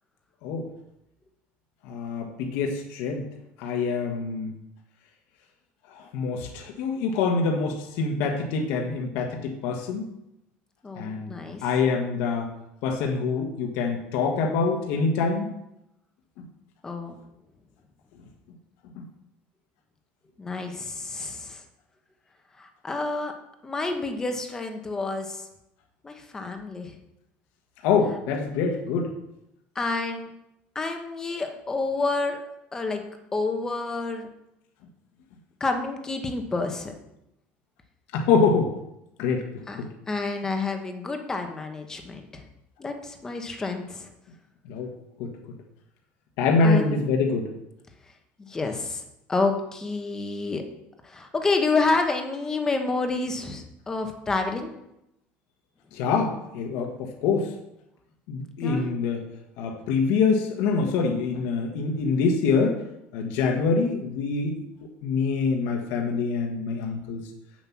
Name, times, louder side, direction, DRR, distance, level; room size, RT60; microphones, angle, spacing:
voice 1, 1.8-3.2 3.6-4.5 5.9-10.0 11.0-11.3 11.6-12.5 12.8-15.5 16.4-16.5 18.9-19.1 27.8-29.1 38.1-38.7 39.2-39.9 44.7-44.9 45.2-45.3 46.4-47.5 55.9-57.5 58.3-59.2 59.6-62.8 63.1-64.6 65.0-67.2, left 4 dB, 65° left, 2 dB, 1.4 m, -25 dB
voice 2, 10.8-11.6 16.8-17.1 20.4-21.6 22.6-23.3 23.6-25.4 26.0-26.9 29.7-30.3 30.7-32.4 32.7-33.0 33.3-34.3 35.6-36.9 39.7-42.4 42.8-44.1 46.6-47.0 48.4-49.0 49.3-50.6 51.0-54.7 58.6-58.8, left 3 dB, 10° left, 5 dB, 1.0 m, -29 dB
7.9 x 7.4 x 5.9 m, 0.84 s
cardioid pair, 180°, 4 cm